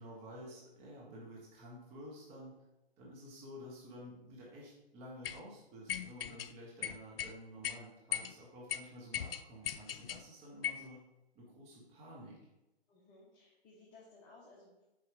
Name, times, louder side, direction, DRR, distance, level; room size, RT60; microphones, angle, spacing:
voice 1, 0.0-2.6 3.0-11.0 11.3-12.4, equal, 20° right, -4 dB, 1.5 m, -51 dB
sound 1, 5.2-5.4 5.9-6.5 6.8-7.3 7.6-7.8 8.1-8.3 8.7-8.8 9.1-10.2 10.6-10.9, left 9 dB, 65° left, 0.5 m, -38 dB
voice 2, 12.9-14.8, left 3 dB, 20° left, -6 dB, 1.5 m, -59 dB
7.2 x 5.2 x 3.5 m, 0.96 s
hypercardioid pair, 145°, 31 cm